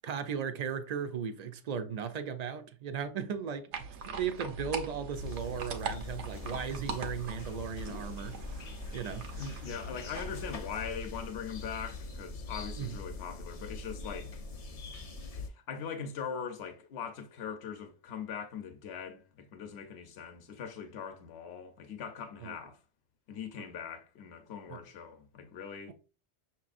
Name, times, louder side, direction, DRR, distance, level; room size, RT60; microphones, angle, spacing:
voice 1, 0.0-3.7 4.2-9.4 12.8-13.0 22.4-22.6 24.7-24.8, right 7 dB, 60° right, 0.4 m, -37 dB
sound 1, 3.7-10.5, right 5 dB, 90° right, 1.0 m, -42 dB
sound 2, 5.1-15.5, left 3 dB, 45° left, 0.5 m, -42 dB
voice 2, 9.4-14.4 15.3-22.8 23.3-25.9, left 7 dB, 65° left, 0.9 m, -41 dB
5.9 x 3.0 x 2.4 m
omnidirectional pair, 1.2 m